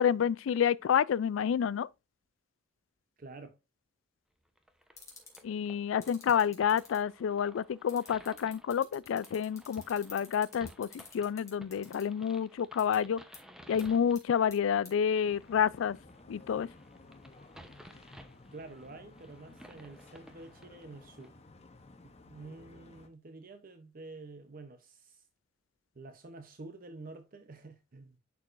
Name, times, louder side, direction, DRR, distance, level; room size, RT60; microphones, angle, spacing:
voice 1, 0.0-1.9 5.4-13.2 13.7-16.0 16.3-16.7, left 8 dB, 85° left, 0.3 m, -29 dB
voice 2, 3.2-3.6 18.5-21.4 22.0-25.2 25.9-28.2, right 3 dB, 45° right, 0.7 m, -49 dB
sound 1, 4.6-21.3, equal, 5° right, 0.8 m, -56 dB
sound 2, 5.0-5.4 6.0-7.0 7.9-12.0 12.8-13.0 13.3-13.4 13.8-13.9 14.2-14.5 14.9-15.0, left 5 dB, 15° left, 2.6 m, -49 dB
sound 3, 15.2-23.1, left 2 dB, 35° left, 0.9 m, -55 dB
11.0 x 4.7 x 2.5 m
head